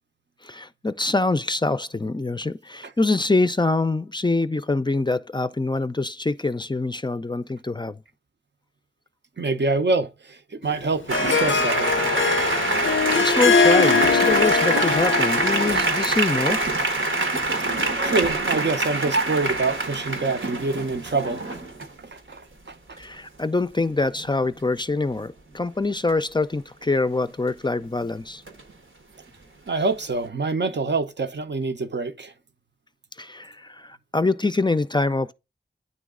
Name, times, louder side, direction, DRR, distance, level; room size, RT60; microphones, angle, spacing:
voice 1, 0.4-8.0 12.7-16.6 23.0-28.4 33.2-35.3, left 2 dB, 25° left, 0.4 m, -25 dB
voice 2, 9.4-11.9 18.0-21.6 22.0-22.7 29.7-32.3, right 3 dB, 65° right, 0.6 m, -26 dB
Harp, 10.7-16.0, left 5 dB, 85° left, 0.4 m, -22 dB
sound 1, 11.1-21.9 23.8-23.9 24.2-24.4 28.5-28.7, right 2 dB, 90° right, 1.0 m, -24 dB
9.2 x 3.1 x 3.6 m
wide cardioid pair, 45°, 20 cm